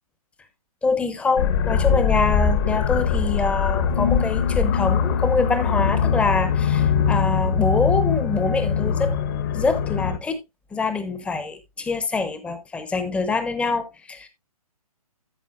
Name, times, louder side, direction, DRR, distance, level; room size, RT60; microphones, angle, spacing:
voice 1, 0.8-9.1 9.5-10.4 10.7-14.3, left 4 dB, 5° left, 0.9 m, -25 dB
sound 1, 1.4-10.2, left 7 dB, 35° left, 1.1 m, -22 dB
13.5 x 6.9 x 2.4 m
figure-of-eight pair, 130°, 19 cm